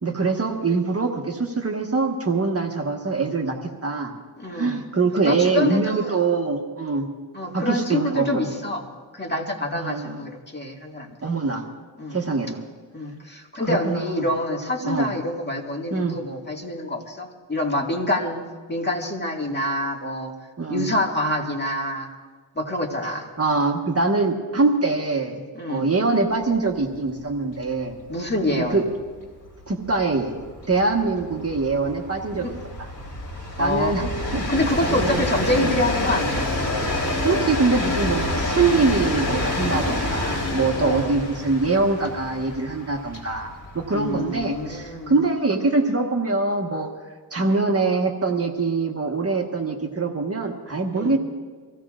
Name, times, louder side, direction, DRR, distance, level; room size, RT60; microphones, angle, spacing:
voice 1, 0.0-4.1 4.5-7.1 7.5-8.5 9.7-10.2 11.2-11.6 12.1-12.6 13.6-14.0 14.8-15.1 15.9-16.2 20.6-20.9 23.0-25.4 25.7-28.0 28.5-28.8 29.7-30.4 30.7-32.5 33.6-34.0 34.3-35.2 35.6-35.7 37.2-46.9 47.3-51.2, right 3 dB, 30° right, 2 dB, 1.4 m, -23 dB
voice 2, 4.4-4.8 5.2-6.2 7.3-8.8 9.1-11.2 12.0-12.2 12.9-20.3 20.7-22.1 22.6-23.3 25.5-25.9 28.1-28.8 32.3-32.5 33.6-34.1 34.5-36.5 40.8-41.1 43.9-45.1 50.9-51.2, left 1 dB, 20° left, 1 dB, 1.9 m, -26 dB
Train, 26.8-26.9 27.2-27.3 27.6-45.0, left 1 dB, 40° left, 3.5 m, -28 dB
25.0 x 16.0 x 2.5 m, 1.5 s
cardioid pair, 90°, 45 cm